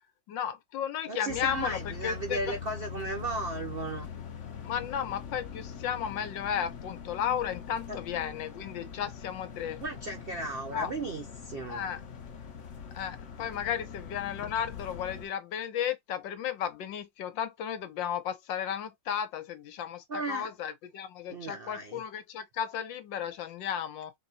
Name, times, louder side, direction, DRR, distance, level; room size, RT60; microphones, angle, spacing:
voice 1, 0.3-2.6 4.6-9.8 10.7-10.9 11.7-12.0 12.9-24.1, left 9 dB, 75° left, 1.5 m, -34 dB
voice 2, 1.1-4.1 7.9-8.0 9.8-11.9 20.1-20.5 21.3-22.0, right 2 dB, 60° right, 0.5 m, -35 dB
sound 1, 1.3-15.3, left 7 dB, 50° left, 1.0 m, -43 dB
4.1 x 2.7 x 4.1 m
omnidirectional pair, 2.0 m